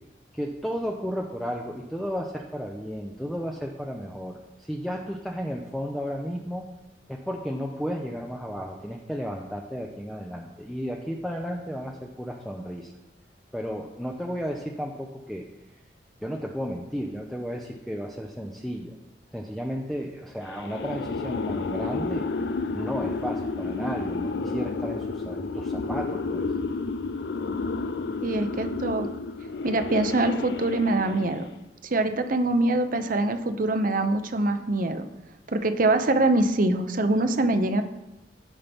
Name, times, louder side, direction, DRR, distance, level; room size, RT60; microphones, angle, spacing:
voice 1, 0.3-6.7 7.1-12.9 13.5-15.5 16.2-19.0 19.3-22.3 22.7-26.4, equal, ahead, 0 dB, 0.6 m, -33 dB
sound 1, 20.5-31.6, left 3 dB, 65° left, 0.4 m, -31 dB
voice 2, 28.2-29.1 29.6-31.5 31.8-35.1 35.5-37.8, right 2 dB, 50° right, 8 dB, 0.8 m, -24 dB
15.5 x 5.6 x 3.6 m, 0.94 s
head